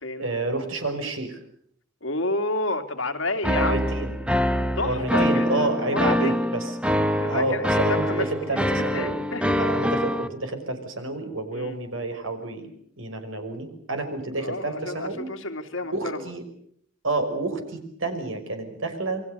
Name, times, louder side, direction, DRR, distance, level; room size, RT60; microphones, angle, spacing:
voice 1, 0.2-1.4 3.5-4.1 4.8-6.7 7.3-9.1 9.6-12.7 13.0-15.3 15.9-16.4 17.0-19.2, right 2 dB, 90° right, 7 dB, 5.8 m, -29 dB
voice 2, 2.0-4.0 4.8-6.4 7.2-8.6 8.9-9.7 11.5-11.8 14.4-16.3, left 2 dB, 75° left, 6 dB, 2.7 m, -30 dB
sound 1, 3.4-10.3, equal, 5° right, 1.4 m, -24 dB
28.5 x 23.5 x 6.8 m, 0.64 s
head